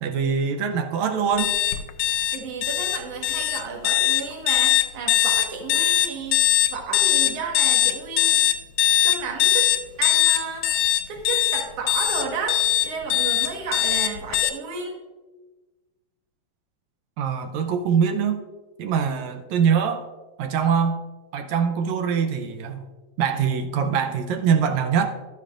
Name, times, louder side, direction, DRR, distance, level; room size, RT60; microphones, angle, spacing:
voice 1, 0.0-1.5 17.2-18.4 18.8-20.1 20.4-21.0 21.3-22.8 23.2-25.1, right 7 dB, 80° right, 7 dB, 2.0 m, -23 dB
sound 1, 1.4-14.5, left 13 dB, 80° left, 1.8 m, -21 dB
voice 2, 2.3-6.4 6.7-8.4 9.0-9.7 10.0-10.7 11.1-15.0, right 5 dB, 65° right, 0 dB, 2.5 m, -32 dB
12.5 x 10.0 x 2.5 m, 1.2 s
omnidirectional pair, 3.3 m